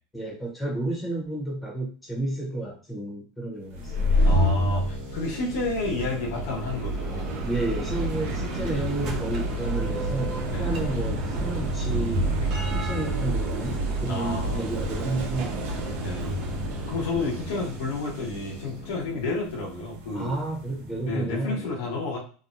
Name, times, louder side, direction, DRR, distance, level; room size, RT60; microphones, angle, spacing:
voice 1, 0.1-4.3 7.4-12.3 12.7-15.9 20.1-21.7, right 2 dB, 10° left, -3 dB, 0.9 m, -31 dB
sound 1, 3.7-21.1, right 1 dB, 80° right, 0.7 m, -29 dB
voice 2, 4.2-7.3 10.5-10.7 14.1-14.7 16.0-16.5 16.9-20.3 21.0-22.2, left 3 dB, 90° left, -2 dB, 1.2 m, -31 dB
sound 2, 4.8-19.4, left 5 dB, 55° left, 0.7 m, -44 dB
Bell, 6.4-18.2, right 2 dB, 30° right, 0.4 m, -37 dB
2.7 x 2.2 x 2.6 m, 0.40 s
supercardioid pair, 175°, 0 cm